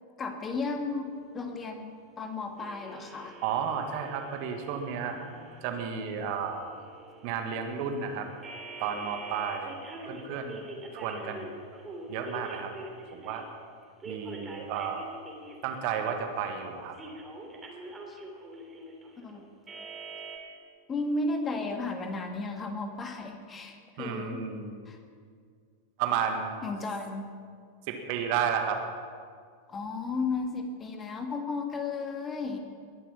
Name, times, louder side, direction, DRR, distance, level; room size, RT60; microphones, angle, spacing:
voice 1, 0.2-1.1 1.3-1.9 2.2-3.3 18.1-18.2 19.2-19.4 20.9-24.4 24.9-25.0 26.6-27.3 29.7-32.6, left 3 dB, 20° left, 4 dB, 1.8 m, -34 dB
sound 1, 2.6-13.5 14.0-16.4 16.9-20.4, right 2 dB, 20° right, 2.9 m, -45 dB
voice 2, 3.4-6.7 7.2-8.3 8.8-9.7 10.0-10.6 10.9-11.5 12.1-12.7 13.1-13.4 14.1-15.1 15.6-17.0 24.0-24.7 26.0-26.6 27.9-28.8, right 7 dB, 45° right, 5 dB, 1.7 m, -32 dB
21.0 x 11.0 x 5.8 m, 2.1 s
figure-of-eight pair, 90°, 0 cm